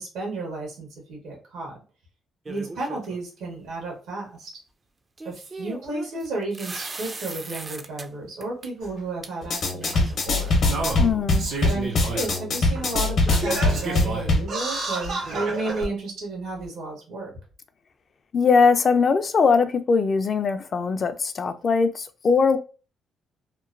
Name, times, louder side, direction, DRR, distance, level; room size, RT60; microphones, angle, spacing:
voice 1, 0.0-1.8 2.5-4.5 5.2-10.0 10.2-10.6 11.6-17.3, right 3 dB, 85° right, 1.2 m, -33 dB
sound 1, 2.4-3.2 5.2-8.1 8.4-8.7 9.2-9.3 9.6-10.8, right 3 dB, 30° right, 0.3 m, -38 dB
Singing, 8.8-8.9 9.9-10.0 10.6-12.3 12.7-12.8 13.3-15.9 16.6-16.7, right 2 dB, 70° right, 1.3 m, -30 dB
sound 2, 9.4-14.5, left 2 dB, 65° left, 0.7 m, -23 dB
voice 2, 11.0-11.5 18.3-22.6, left 5 dB, 45° left, 0.3 m, -21 dB
2.9 x 2.1 x 2.4 m
cardioid pair, 90°, 0 cm